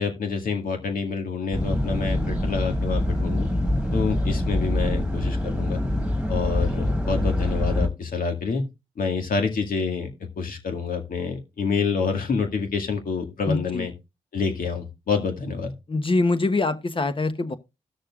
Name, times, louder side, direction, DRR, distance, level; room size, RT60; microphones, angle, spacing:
voice 1, 0.0-3.5 3.9-5.8 6.3-8.6 9.0-10.1 10.4-13.9 14.3-15.7, left 5 dB, 70° left, 2.0 m, -27 dB
sound 1, 1.5-7.9, left 1 dB, 5° right, 1.8 m, -25 dB
voice 2, 13.5-13.9 15.9-17.6, left 3 dB, 35° left, 1.1 m, -24 dB
17.0 x 6.5 x 2.4 m
cardioid pair, 55°, 15 cm